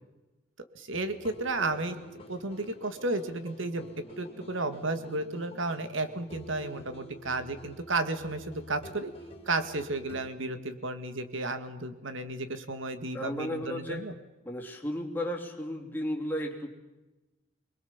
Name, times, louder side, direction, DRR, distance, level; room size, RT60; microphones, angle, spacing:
voice 1, 0.8-2.0 2.3-3.9 4.2-9.1 9.5-14.1, right 2 dB, 70° right, 9 dB, 1.9 m, -33 dB
sound 1, 0.9-10.3, equal, 30° left, 3.1 m, -49 dB
voice 2, 13.1-14.0 14.4-16.7, equal, 10° left, 0 dB, 3.3 m, -34 dB
25.0 x 22.0 x 7.3 m, 1.1 s
head